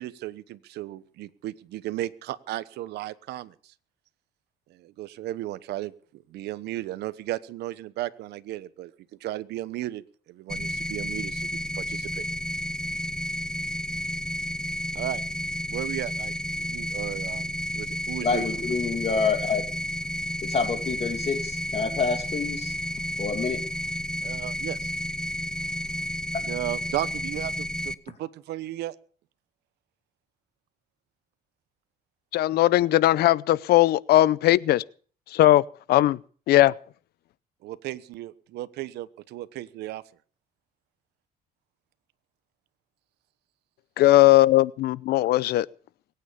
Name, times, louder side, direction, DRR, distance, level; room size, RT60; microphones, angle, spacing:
voice 1, 0.0-3.7 4.7-5.9 6.3-8.9 9.2-10.0 10.3-12.3 14.9-15.2 15.7-18.5 24.2-24.9 26.4-28.9 37.6-40.0, right 15 dB, 80° right, 1.1 m, -35 dB
sound 1, 10.5-27.9, left 1 dB, 5° left, 0.7 m, -31 dB
voice 2, 18.2-19.6 20.5-22.7 23.2-23.6, left 5 dB, 40° left, 2.6 m, -27 dB
voice 3, 32.3-34.8 35.3-35.6 35.9-36.2 36.5-36.7 44.0-45.7, left 15 dB, 70° left, 0.7 m, -19 dB
22.5 x 9.2 x 6.9 m
cardioid pair, 110°, 17 cm